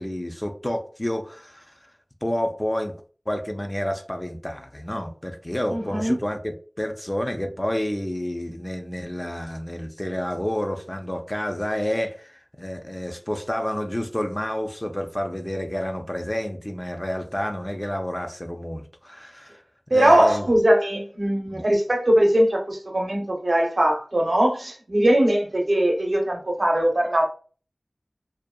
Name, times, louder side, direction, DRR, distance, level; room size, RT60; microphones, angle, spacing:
voice 1, 0.0-1.7 2.2-3.0 3.3-19.6 19.9-20.5 21.5-21.6, left 1 dB, 20° left, 0.4 m, -29 dB
voice 2, 5.7-6.2 19.9-27.2, right 1 dB, 65° right, 0.7 m, -20 dB
2.6 x 2.3 x 2.2 m
wide cardioid pair, 45°, 0 cm